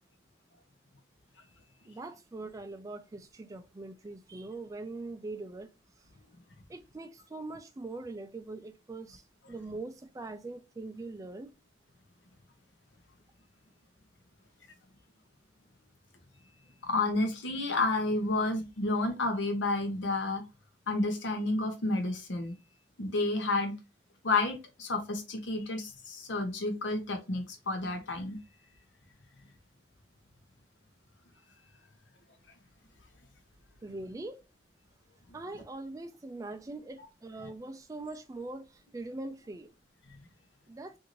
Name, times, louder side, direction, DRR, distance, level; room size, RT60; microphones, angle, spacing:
voice 1, 1.8-5.7 6.7-9.2 9.5-11.5 33.8-34.4 35.3-39.7 40.7-41.0, right 2 dB, 20° right, 0.3 m, -42 dB
voice 2, 16.8-20.4 20.9-22.5 23.0-23.7 24.2-28.4, left 2 dB, 75° left, 0.8 m, -30 dB
2.6 x 2.5 x 2.9 m
head